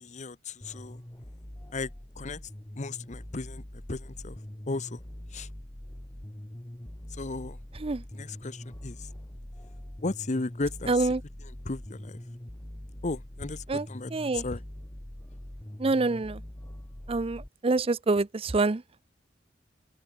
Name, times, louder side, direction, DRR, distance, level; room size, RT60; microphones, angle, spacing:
voice 1, 0.0-1.0 1.7-1.9 2.2-2.4 2.8-3.6 3.9-4.4 4.7-5.0 5.3-5.5 7.2-7.6 8.1-9.0 10.0-11.1 11.6-12.2 13.0-14.6, left 3 dB, 40° left, 0.9 m, -35 dB
sound 1, 0.6-17.5, left 1 dB, 15° left, 1.1 m, -43 dB
voice 2, 10.9-11.2 13.7-14.4 15.8-16.4 17.1-19.0, right 3 dB, 30° right, 0.6 m, -27 dB
head